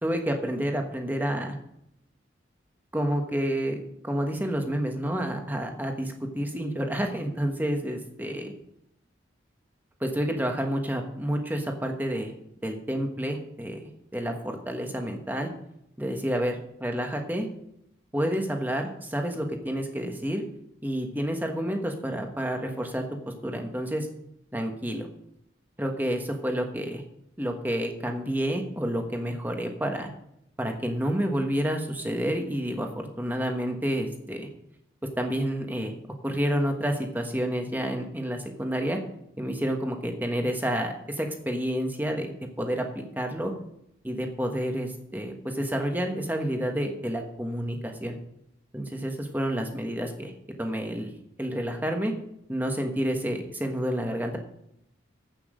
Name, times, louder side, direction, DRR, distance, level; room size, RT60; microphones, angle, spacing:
voice 1, 0.0-1.6 2.9-8.5 10.0-12.3 12.6-15.5 16.0-17.5 18.1-20.4 20.8-24.1 24.5-25.1 25.8-27.0 27.4-30.1 30.6-34.5 35.2-35.9 36.2-39.0 39.4-43.5 44.0-48.2 48.7-50.3 50.6-51.1 51.4-52.1 52.5-54.4, equal, 10° right, 3 dB, 1.3 m, -29 dB
10.5 x 8.5 x 5.1 m, 0.77 s
head